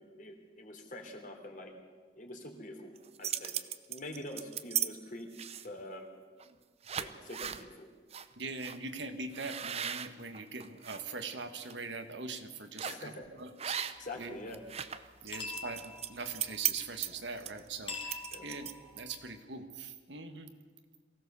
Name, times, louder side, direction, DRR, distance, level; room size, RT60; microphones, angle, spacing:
voice 1, 0.0-1.7 2.1-2.9 3.2-3.5 3.9-5.3 5.6-6.1 6.9-7.9 12.8-13.3 14.0-14.6 18.3-18.5, left 1 dB, 45° left, 3 dB, 3.2 m, -45 dB
sound 1, 3.0-4.9 5.3-5.8 6.4-6.5 6.8-7.6 8.1-8.3 8.6-8.8 9.3-11.0 11.5-11.7 12.8-13.1 13.6-14.2 14.5-19.0, right 9 dB, 35° right, 0.7 m, -37 dB
voice 2, 8.4-13.0 13.4-14.4 15.2-20.5, right 4 dB, 75° right, 7 dB, 1.6 m, -42 dB
sound 2, 13.9-19.4, left 4 dB, 30° left, 2.4 m, -47 dB
23.0 x 17.0 x 7.0 m, 1.5 s
head